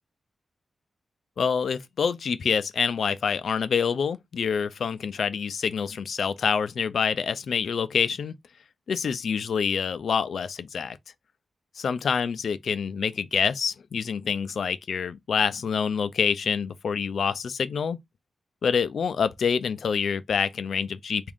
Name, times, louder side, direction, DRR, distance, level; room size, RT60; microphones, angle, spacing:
voice 1, 1.4-8.3 8.9-11.0 11.8-18.0 18.6-21.3, left 6 dB, 70° left, 0.4 m, -26 dB
3.6 x 2.5 x 3.5 m
wide cardioid pair, 155°, 0 cm